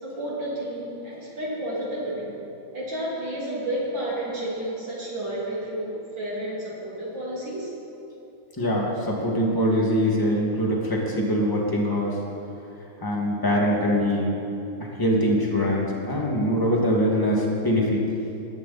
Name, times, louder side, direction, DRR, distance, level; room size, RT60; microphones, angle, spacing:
voice 1, 0.0-2.4 2.7-7.7, right 1 dB, 60° right, -7 dB, 3.3 m, -31 dB
voice 2, 8.6-12.2 13.0-14.4 14.8-18.1, equal, 10° left, -3 dB, 2.0 m, -23 dB
20.5 x 12.5 x 4.3 m, 2.9 s
omnidirectional pair, 2.4 m